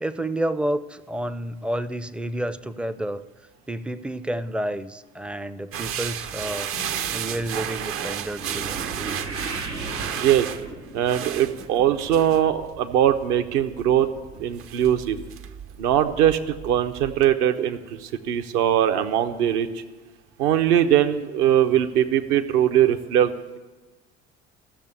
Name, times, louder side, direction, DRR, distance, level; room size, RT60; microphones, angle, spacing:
voice 1, 0.0-3.2 3.7-6.7 7.1-9.2, right 1 dB, 5° right, 14 dB, 0.4 m, -30 dB
sound 1, 5.7-17.3, right 9 dB, 40° right, 0.6 m, -34 dB
sound 2, 6.3-12.7 12.9-13.4 14.0-14.1 14.4-14.5, right 3 dB, 85° right, 1.7 m, -38 dB
voice 2, 10.2-10.5 10.9-14.1 14.4-15.2 15.8-19.7 20.4-23.6, right 10 dB, 60° right, 8 dB, 0.9 m, -21 dB
13.5 x 6.9 x 8.3 m, 1.2 s
figure-of-eight pair, 55°, 34 cm